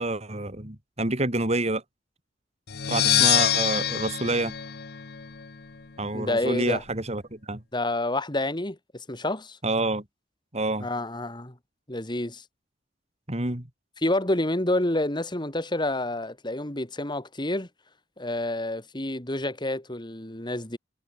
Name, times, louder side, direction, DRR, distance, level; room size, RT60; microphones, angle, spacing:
voice 1, 0.0-1.8 2.9-4.5 6.0-7.6 9.6-10.0 10.5-10.9 13.3-13.7, right 2 dB, 35° right, 3.1 m, -28 dB
sound 1, 2.7-5.5, left 10 dB, 60° left, 0.9 m, -25 dB
voice 2, 6.1-6.8 7.7-9.6 10.8-11.5 11.9-12.4 14.0-17.7 18.2-20.8, left 1 dB, 25° left, 2.4 m, -28 dB
head